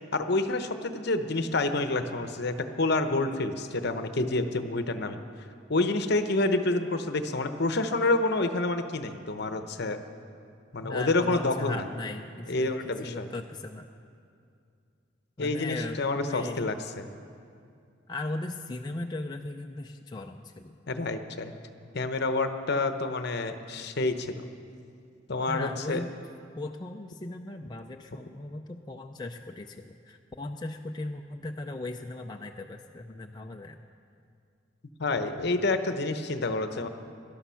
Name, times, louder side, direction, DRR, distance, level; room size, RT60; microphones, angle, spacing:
voice 1, 0.1-5.2 5.7-10.0 10.7-11.8 12.5-13.3 15.4-17.1 20.9-21.5 21.9-24.4 25.3-26.0 35.0-36.9, left 2 dB, 55° left, 8 dB, 0.9 m, -28 dB
voice 2, 10.8-13.9 15.4-16.7 18.1-20.8 25.5-26.1 26.6-33.8, left 2 dB, 20° left, 2 dB, 0.4 m, -38 dB
19.0 x 12.0 x 5.7 m, 2.4 s
head